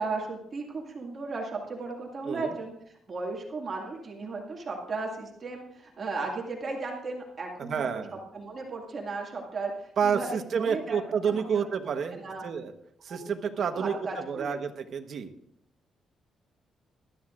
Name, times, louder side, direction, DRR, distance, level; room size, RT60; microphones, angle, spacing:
voice 1, 0.0-2.7 3.1-11.0 11.3-11.6 12.1-12.4 13.1-13.2 13.6-14.6, right 3 dB, 35° right, -1 dB, 2.1 m, -35 dB
voice 2, 2.2-2.5 7.6-8.1 10.0-12.7 13.0-15.3, right 6 dB, 55° right, 7 dB, 1.2 m, -29 dB
20.5 x 12.5 x 2.5 m, 0.74 s
cardioid pair, 145°, 0 cm